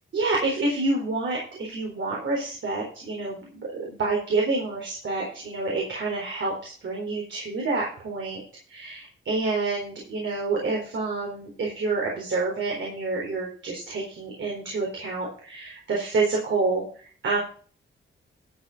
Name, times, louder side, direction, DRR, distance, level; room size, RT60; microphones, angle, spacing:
voice 1, 0.1-8.4 8.7-17.4, right 3 dB, 65° right, -2 dB, 4.1 m, -28 dB
12.5 x 6.1 x 5.3 m, 0.41 s
wide cardioid pair, 140°, 21 cm